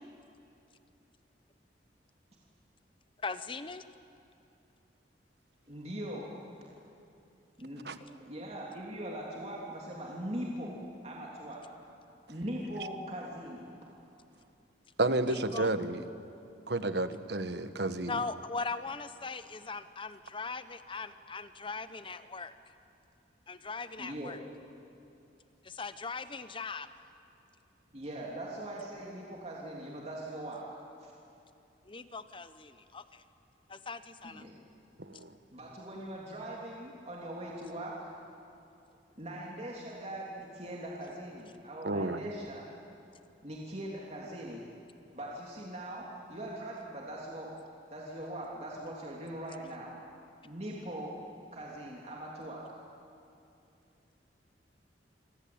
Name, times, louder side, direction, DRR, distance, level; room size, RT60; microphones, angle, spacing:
voice 1, 3.2-3.8 15.2-15.7 18.0-22.5 23.5-24.4 25.6-26.9 31.9-33.2 33.7-34.4, left 4 dB, 30° left, 12 dB, 0.9 m, -40 dB
voice 2, 5.7-6.4 7.6-7.8 8.2-11.8 12.3-13.7 24.0-24.3 27.9-31.1 34.2-34.5 35.5-38.1 39.2-42.7 43.4-44.6 45.1-47.6 47.9-50.0 50.4-51.2 51.5-52.6, right 1 dB, 35° right, -3 dB, 3.2 m, -41 dB
voice 3, 15.0-16.0 16.7-18.2 35.1-35.3 41.8-42.2, right 2 dB, 65° right, 10 dB, 1.4 m, -31 dB
27.5 x 24.5 x 8.8 m, 2.7 s
head